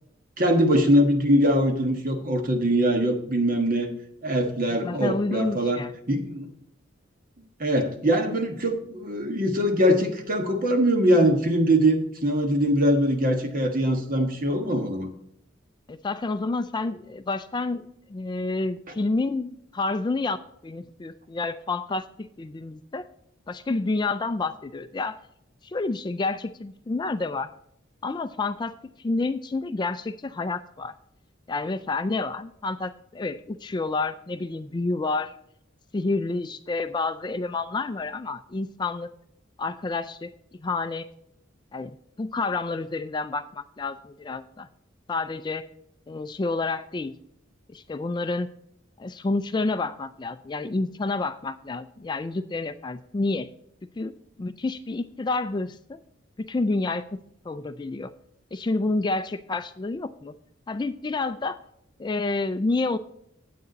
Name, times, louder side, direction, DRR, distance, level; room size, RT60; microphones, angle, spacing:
voice 1, 0.4-3.9 4.2-5.8 6.1-6.5 7.6-15.1, equal, 45° right, 4 dB, 1.4 m, -22 dB
voice 2, 4.8-5.9 15.9-20.4 20.6-23.1 23.5-25.2 25.6-27.5 28.0-28.7 29.0-30.9 31.5-35.3 35.9-39.1 39.6-41.1 41.7-44.7 45.1-45.6 46.1-47.1 47.7-48.5 49.0-53.5 54.0-54.1 54.4-56.0 56.4-57.2 57.4-58.1 58.5-60.3 60.7-61.6 62.0-63.0, left 3 dB, 20° left, 11 dB, 0.3 m, -29 dB
9.4 x 8.4 x 4.0 m, 0.72 s
head